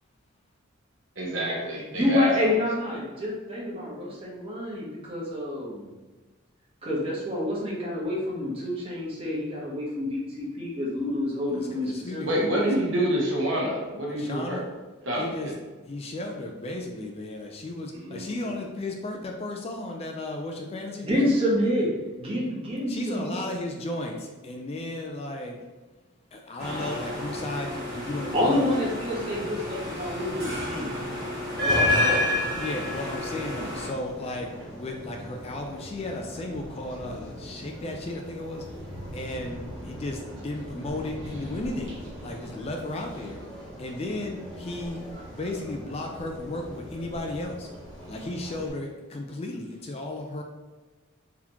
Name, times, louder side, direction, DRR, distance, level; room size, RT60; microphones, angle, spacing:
voice 1, 1.2-2.6 12.2-14.6 15.0-15.5 17.9-18.3 31.6-32.3, equal, 60° right, -3 dB, 1.1 m, -27 dB
voice 2, 1.9-5.9 6.8-12.2 21.0-21.9 22.2-23.4 26.7-26.9 28.3-30.9, left 1 dB, 25° right, -6 dB, 1.1 m, -28 dB
voice 3, 11.5-12.5 14.1-14.7 15.2-15.5 15.8-21.3 22.9-25.6 26.3-28.8 32.3-38.6 39.1-43.4 43.8-45.0 45.3-47.7 48.1-50.4, left 2 dB, 30° left, 2 dB, 0.3 m, -34 dB
sound 1, 26.6-33.9, left 1 dB, 45° right, 1.3 m, -29 dB
sound 2, 31.6-48.7, equal, 5° left, 1.0 m, -42 dB
4.0 x 2.9 x 2.9 m, 1.2 s
head